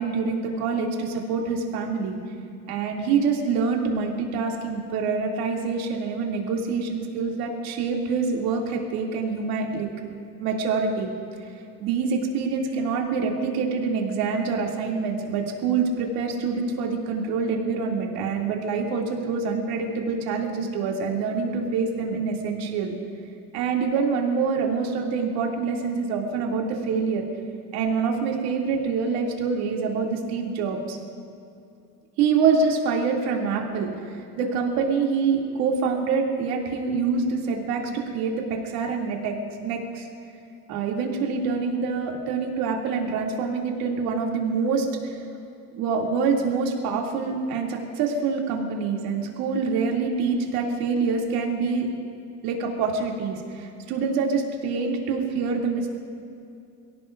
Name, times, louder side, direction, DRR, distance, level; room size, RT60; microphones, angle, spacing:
voice 1, 0.0-2.2 2.7-9.9 10.4-11.1 11.8-22.9 23.5-27.3 27.7-31.0 32.2-40.1 40.7-45.3 45.7-51.9 52.4-56.0, right 5 dB, 60° right, -1 dB, 2.7 m, -26 dB
28.0 x 17.0 x 2.6 m, 2.5 s
cardioid pair, 175°, 42 cm